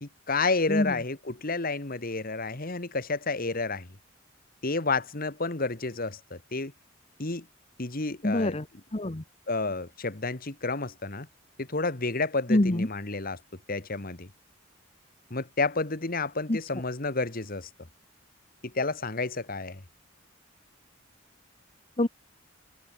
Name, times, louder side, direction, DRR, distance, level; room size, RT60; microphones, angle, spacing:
voice 1, 0.0-3.9 4.6-6.7 7.2-7.5 7.8-8.5 9.5-11.3 11.6-13.4 13.7-14.3 15.3-17.7 18.6-19.8, left 3 dB, 45° left, 1.8 m, -30 dB
voice 2, 8.2-8.7 8.9-9.2 12.5-12.9 16.5-16.6 22.0-22.1, left 1 dB, 30° left, 1.1 m, -25 dB
head